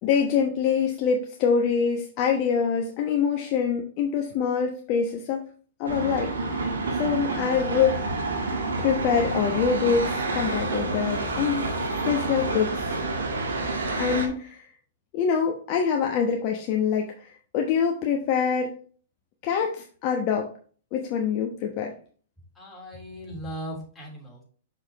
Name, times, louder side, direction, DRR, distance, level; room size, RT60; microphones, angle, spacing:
voice 1, 0.0-5.4 5.8-6.3 7.0-8.0 8.8-11.7 12.1-12.9 13.9-14.6 15.1-18.7 19.4-20.5 20.9-21.9, left 6 dB, 45° left, 1 dB, 1.0 m, -25 dB
sound 1, 5.8-14.3, right 2 dB, 80° right, 1.7 m, -28 dB
voice 2, 22.5-24.4, equal, 15° left, -3 dB, 3.4 m, -38 dB
6.4 x 5.6 x 3.0 m, 0.43 s
hypercardioid pair, 120°, 0 cm